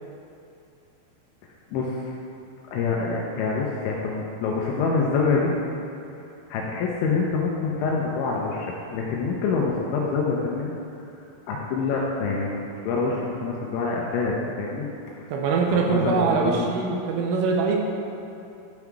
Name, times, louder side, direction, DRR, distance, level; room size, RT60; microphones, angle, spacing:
voice 1, 1.7-2.1 2.7-5.5 6.5-10.7 11.5-15.3 15.6-16.7, left 4 dB, 80° left, -2 dB, 2.7 m, -26 dB
voice 2, 15.3-17.8, right 4 dB, 85° right, 1 dB, 3.1 m, -23 dB
12.0 x 5.6 x 4.7 m, 2.7 s
omnidirectional pair, 6.0 m